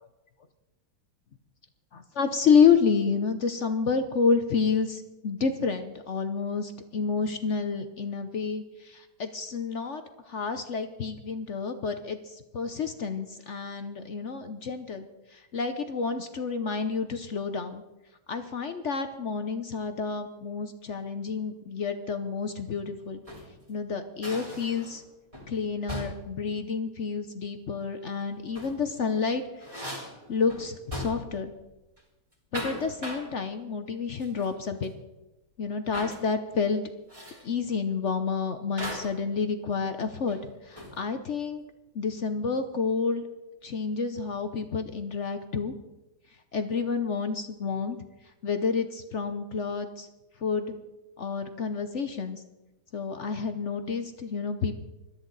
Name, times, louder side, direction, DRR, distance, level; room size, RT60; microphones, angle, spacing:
voice 1, 1.9-17.8 18.3-23.2 23.7-25.0 25.5-29.4 30.3-31.5 32.5-34.9 35.6-36.8 37.4-41.6 41.9-43.2 43.6-45.7 46.5-48.0 48.4-50.1 50.4-50.7 51.2-52.4 52.9-54.8, left 5 dB, 70° left, 8 dB, 0.6 m, -29 dB
sound 1, 23.0-23.6 24.2-25.1 25.3-25.5 25.9-26.3 28.3-28.9 29.2-31.4 31.7-32.0 32.3-33.3 34.2-34.6 34.8-34.9 35.9-36.2 37.1-37.5 38.8-39.2 40.3-41.1, equal, 15° right, 3.4 m, -39 dB
21.5 x 13.0 x 4.0 m, 1.0 s
omnidirectional pair, 2.3 m